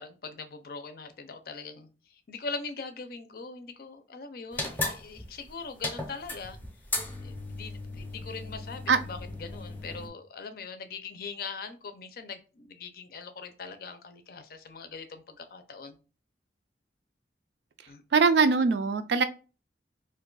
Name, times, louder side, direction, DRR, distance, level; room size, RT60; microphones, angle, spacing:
voice 1, 0.0-6.6 7.2-16.0 17.9-18.0, left 4 dB, 55° left, 8 dB, 0.5 m, -41 dB
sound 1, 4.5-10.1, left 2 dB, 10° left, 0.6 m, -36 dB
voice 2, 18.1-19.2, right 4 dB, 70° right, 10 dB, 0.4 m, -22 dB
2.6 x 2.2 x 3.8 m, 0.34 s
head